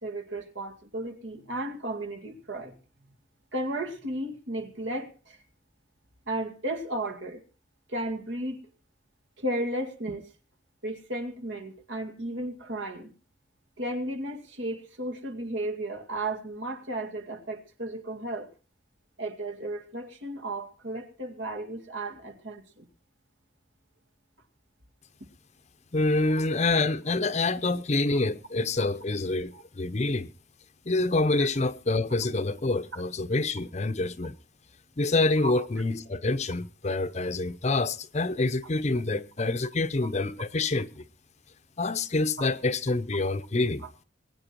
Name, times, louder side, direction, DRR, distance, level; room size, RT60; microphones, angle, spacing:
voice 1, 0.0-2.8 3.5-5.4 6.3-7.4 7.9-8.6 9.4-10.3 10.8-13.1 13.8-18.5 19.2-22.9 26.4-26.5 29.5-29.6 31.4-31.5 32.9-33.0 35.4-35.7 42.4-42.5, right 1 dB, 75° right, 2.3 m, -34 dB
voice 2, 25.9-30.3 30.9-34.4 35.0-41.0 41.8-43.8, left 2 dB, 35° left, 0.7 m, -27 dB
21.0 x 9.5 x 4.5 m
head